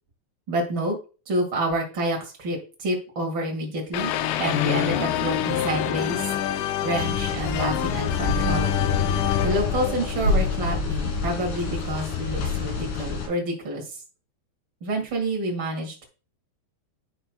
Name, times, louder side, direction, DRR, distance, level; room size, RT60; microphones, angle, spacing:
voice 1, 0.5-1.0 1.2-6.3 6.8-8.9 9.4-14.0 14.8-16.0, right 1 dB, 50° right, 0 dB, 1.5 m, -28 dB
sound 1, 3.9-10.9, left 11 dB, 85° left, 3.1 m, -27 dB
sound 2, 7.0-13.3, left 3 dB, 60° left, 3.9 m, -27 dB
11.0 x 5.9 x 2.3 m, 0.33 s
omnidirectional pair, 5.4 m